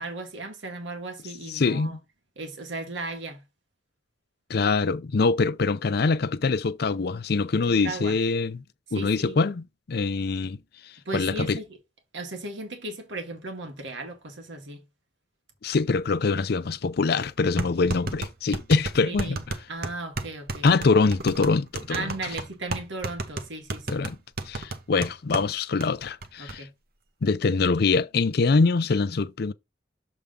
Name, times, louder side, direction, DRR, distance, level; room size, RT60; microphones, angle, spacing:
voice 1, 0.0-2.0 2.4-3.4 7.7-8.2 8.9-9.4 11.1-11.7 12.1-14.9 19.0-19.4 19.7-20.7 21.9-24.0 26.4-26.7, right 2 dB, 90° right, 1.8 m, -36 dB
voice 2, 1.5-1.9 4.5-8.6 8.9-10.6 11.1-11.6 15.6-19.4 20.6-22.1 23.9-24.2 24.5-26.7 27.2-29.5, left 4 dB, 60° left, 0.5 m, -24 dB
sound 1, 16.7-16.8 17.6-25.5 25.8-25.9 26.2-26.6, right 3 dB, 55° right, 0.9 m, -33 dB
7.0 x 3.6 x 5.0 m
head